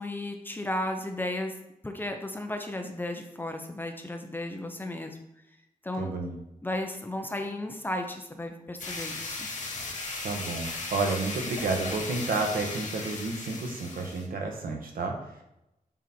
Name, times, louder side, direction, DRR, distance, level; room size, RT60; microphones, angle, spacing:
voice 1, 0.0-1.6 1.8-5.2 5.8-6.1 6.6-9.5, left 1 dB, 15° left, 4 dB, 0.6 m, -34 dB
voice 2, 6.0-6.4 10.2-15.4, right 3 dB, 85° right, 2 dB, 1.3 m, -31 dB
sound 1, 8.8-14.3, left 3 dB, 60° left, 1.3 m, -36 dB
7.5 x 4.1 x 4.4 m, 0.86 s
wide cardioid pair, 175°, 14 cm